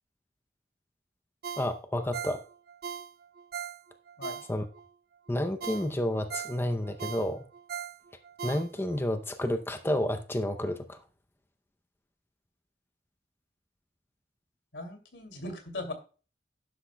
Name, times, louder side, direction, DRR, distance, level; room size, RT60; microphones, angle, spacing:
Ringtone, 1.4-4.9 5.3-5.4 5.6-9.0 9.4-9.5, right 7 dB, 55° right, 0.4 m, -40 dB
voice 1, 1.6-2.4 4.5-4.6 5.3-7.4 8.4-11.0, left 1 dB, 15° left, 0.6 m, -30 dB
voice 2, 14.7-15.9, left 2 dB, 85° left, 2.6 m, -39 dB
12.0 x 10.0 x 2.2 m
head